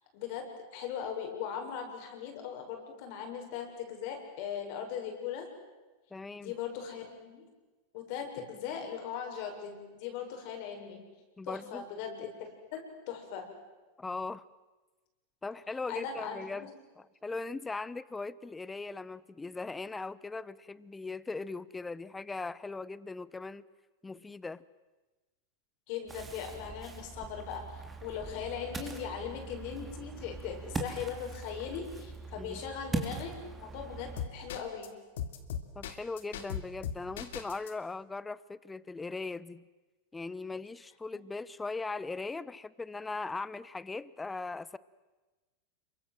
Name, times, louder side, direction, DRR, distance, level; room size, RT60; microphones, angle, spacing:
voice 1, 0.1-5.5 6.3-7.4 7.9-11.0 11.4-13.5 15.9-16.7 25.9-33.3 33.6-35.0, left 7 dB, 60° left, 3 dB, 6.8 m, -39 dB
voice 2, 6.1-6.5 11.4-11.9 14.0-14.4 15.4-16.7 17.0-23.6 24.0-24.6 32.4-32.6 35.7-39.6 40.1-44.8, left 3 dB, 10° left, 19 dB, 0.9 m, -39 dB
Ocean, 26.1-34.2, right 4 dB, 15° right, 3.4 m, -41 dB
sound 1, 34.2-34.9 35.2-37.7, left 9 dB, 80° left, 2.9 m, -37 dB
27.0 x 24.0 x 7.8 m, 1.2 s
hypercardioid pair, 120°, 0 cm